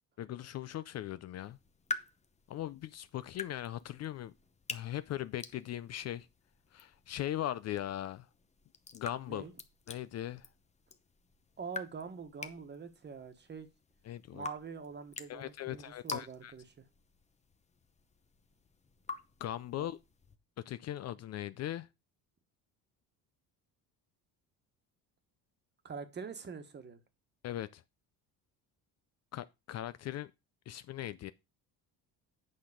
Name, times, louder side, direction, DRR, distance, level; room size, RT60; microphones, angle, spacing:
voice 1, 0.2-1.6 2.5-4.3 4.7-6.3 6.7-8.3 8.9-9.5 9.9-10.5 14.1-14.5 15.3-16.5 19.4-20.0 20.7-21.9 27.4-27.8 29.3-30.3 30.7-31.3, left 12 dB, 45° left, 0.5 m, -39 dB
sound 1, 1.4-20.4, left 4 dB, 20° left, 0.8 m, -48 dB
voice 2, 11.6-13.7 14.3-16.8 19.8-19.9 25.8-27.0, right 5 dB, 30° right, 1.4 m, -45 dB
8.6 x 5.9 x 5.0 m
cardioid pair, 130°, 37 cm